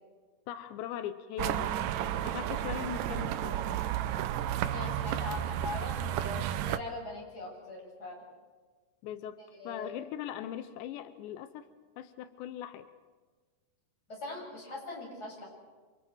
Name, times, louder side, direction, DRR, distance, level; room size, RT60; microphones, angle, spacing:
voice 1, 0.5-1.8 2.2-3.7 9.0-9.4 9.6-11.7 12.0-12.9, left 11 dB, 90° left, 10 dB, 3.1 m, -40 dB
sound 1, 1.4-6.8, right 11 dB, 90° right, 1.9 m, -32 dB
voice 2, 4.5-6.4 6.6-8.2 9.6-9.9 14.1-15.5, left 2 dB, 20° left, -3 dB, 8.0 m, -41 dB
28.5 x 27.0 x 4.6 m, 1.4 s
omnidirectional pair, 4.9 m